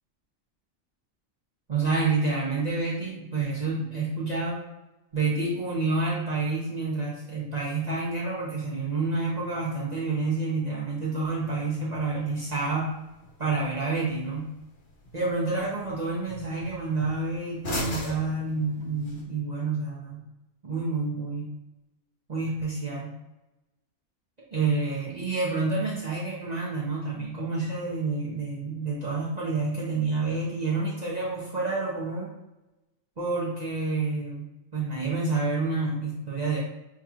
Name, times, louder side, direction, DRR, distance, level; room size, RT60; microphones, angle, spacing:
voice 1, 1.7-4.6 5.1-12.9 13.4-14.5 15.1-20.2 20.6-21.5 22.3-23.1 24.5-32.3 33.2-36.6, right 3 dB, 40° right, -7 dB, 0.8 m, -28 dB
sound 1, 11.2-19.2, left 1 dB, 65° left, 1.4 m, -41 dB
5.9 x 2.9 x 2.4 m, 0.98 s
omnidirectional pair, 1.3 m